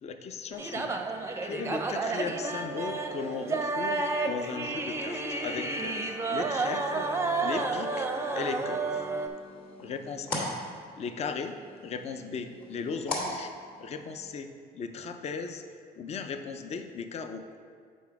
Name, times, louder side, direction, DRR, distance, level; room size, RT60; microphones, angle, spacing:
voice 1, 0.0-1.0 1.4-7.1 7.4-9.0 9.8-10.5 11.0-11.5 11.8-13.5 13.8-15.6 16.0-17.4, left 5 dB, 40° left, 8 dB, 0.5 m, -37 dB
sound 1, 0.5-9.3, right 3 dB, 15° right, 0.5 m, -31 dB
sound 2, 8.9-14.3, left 1 dB, 55° left, 1.9 m, -39 dB
7.1 x 5.1 x 4.7 m, 2.1 s
cardioid pair, 110°, 17 cm